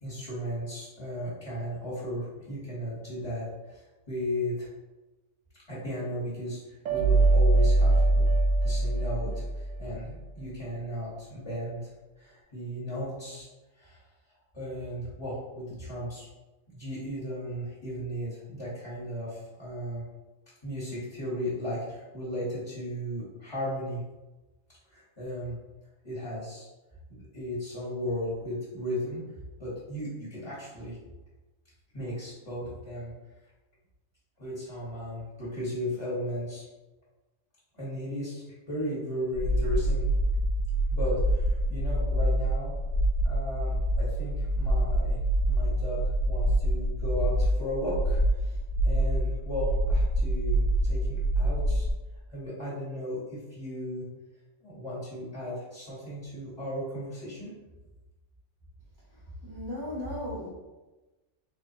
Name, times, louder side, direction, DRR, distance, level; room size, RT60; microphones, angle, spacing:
voice 1, 0.0-4.7 5.7-8.3 8.6-11.9 12.2-13.5 13.8-14.0 14.5-16.3 16.7-20.0 20.6-24.0 24.9-25.6 26.0-26.7 27.1-29.2 29.6-31.0 31.9-33.1 34.4-36.6 37.7-40.0 40.9-42.7 43.2-45.2 45.5-46.0 46.2-51.9 52.3-54.0 54.6-57.5, equal, 25° left, -9 dB, 1.3 m, -35 dB
sound 1, 6.9-10.0, right 2 dB, 90° right, 1.0 m, -22 dB
sound 2, 39.3-51.9, right 1 dB, 80° left, 1.0 m, -26 dB
voice 2, 59.4-60.5, left 1 dB, 25° right, -7 dB, 0.6 m, -36 dB
3.8 x 3.2 x 2.9 m, 1.1 s
omnidirectional pair, 1.3 m